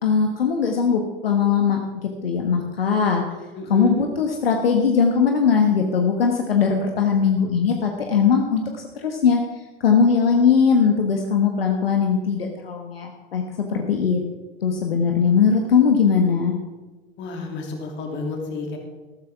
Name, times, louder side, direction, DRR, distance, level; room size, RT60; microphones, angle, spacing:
voice 1, 0.0-3.2 3.7-9.4 9.8-14.2 14.6-16.5, left 6 dB, 70° left, 3 dB, 1.3 m, -20 dB
voice 2, 3.5-4.0 17.2-18.8, left 3 dB, 40° left, 2 dB, 2.9 m, -31 dB
14.0 x 13.0 x 3.6 m, 1.2 s
figure-of-eight pair, 80°, 30 cm